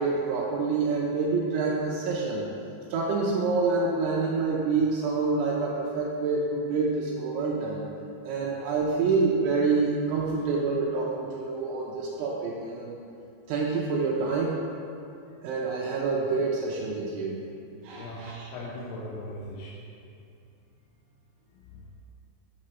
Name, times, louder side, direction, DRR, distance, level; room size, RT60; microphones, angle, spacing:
voice 1, 0.0-2.5 2.9-7.8 8.2-13.0 13.5-14.6 15.4-17.4 17.8-18.5, right 4 dB, 80° right, -4 dB, 3.1 m, -27 dB
voice 2, 17.9-19.8 21.5-21.9, left 1 dB, 85° left, -6 dB, 3.6 m, -39 dB
9.5 x 6.4 x 4.4 m, 2.6 s
omnidirectional pair, 5.7 m